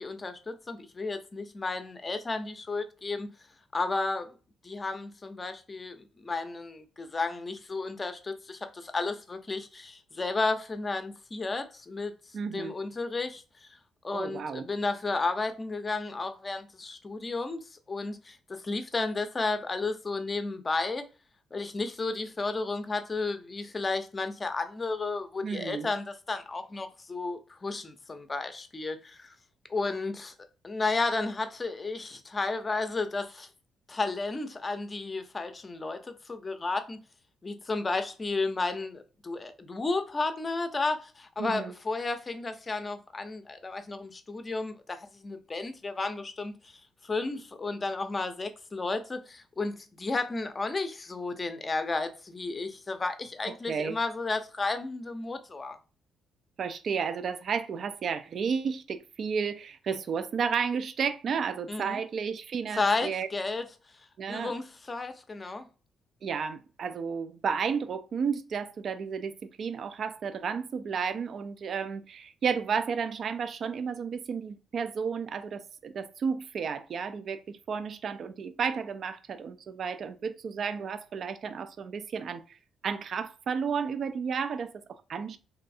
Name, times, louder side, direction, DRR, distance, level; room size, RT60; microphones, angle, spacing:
voice 1, 0.0-3.3 3.7-4.3 4.6-12.1 12.5-13.4 14.0-21.0 21.5-29.3 29.7-30.3 30.6-33.5 33.9-37.0 37.4-46.8 47.0-55.8 61.7-62.0 62.7-63.7 64.3-65.7, left 3 dB, 30° left, 0.5 m, -33 dB
voice 2, 12.3-12.7 14.1-14.7 25.4-25.9 41.4-41.7 53.5-54.0 56.6-63.3 64.2-64.5 66.2-82.6 82.8-85.4, right 6 dB, 55° right, 0.3 m, -32 dB
3.1 x 2.6 x 2.6 m
cardioid pair, 90°, 0 cm